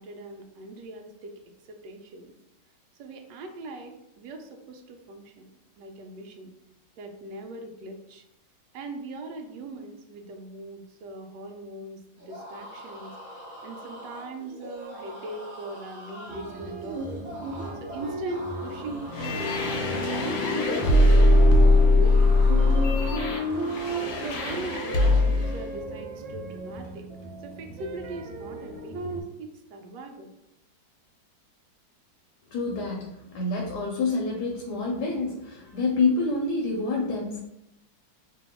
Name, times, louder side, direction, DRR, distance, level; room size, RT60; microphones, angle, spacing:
voice 1, 0.0-1.4 1.7-2.3 3.0-5.5 5.8-6.5 7.0-8.2 8.7-12.0 12.3-13.1 13.6-17.1 17.7-19.6 20.0-21.5 21.8-23.5 24.2-27.1 27.4-30.3, right 2 dB, 75° right, 4 dB, 1.1 m, -40 dB
sound 1, 12.2-24.3, equal, 30° right, 0.5 m, -43 dB
sound 2, 16.3-29.2, right 1 dB, 90° right, 1.4 m, -35 dB
sound 3, 19.1-25.5, left 2 dB, 85° left, 1.4 m, -21 dB
voice 2, 32.5-37.4, left 3 dB, 70° left, -2 dB, 1.2 m, -27 dB
2.9 x 2.7 x 3.5 m, 0.82 s
omnidirectional pair, 2.0 m